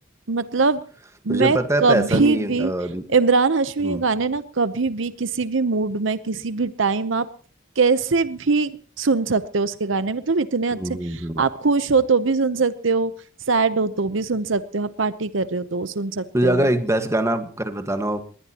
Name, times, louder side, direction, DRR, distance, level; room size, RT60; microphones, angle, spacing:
voice 1, 0.3-0.8 1.2-2.7 3.1-7.3 7.8-10.8 11.1-13.1 13.5-16.7, right 4 dB, 70° right, 14 dB, 0.8 m, -22 dB
voice 2, 1.3-3.1 3.8-4.0 10.8-11.4 16.3-18.2, right 1 dB, 15° right, 9 dB, 1.5 m, -23 dB
21.0 x 18.5 x 3.0 m, 0.42 s
head